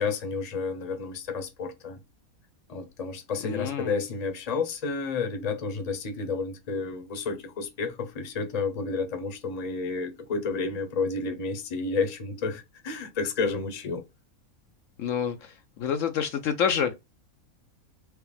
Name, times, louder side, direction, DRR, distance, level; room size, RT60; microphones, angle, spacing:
voice 1, 0.0-2.0 2.7-14.0, left 4 dB, 35° left, 0.8 m, -31 dB
voice 2, 3.4-3.9 15.0-15.5 15.8-16.9, left 7 dB, 70° left, 0.9 m, -27 dB
4.7 x 2.9 x 3.3 m
omnidirectional pair, 1.5 m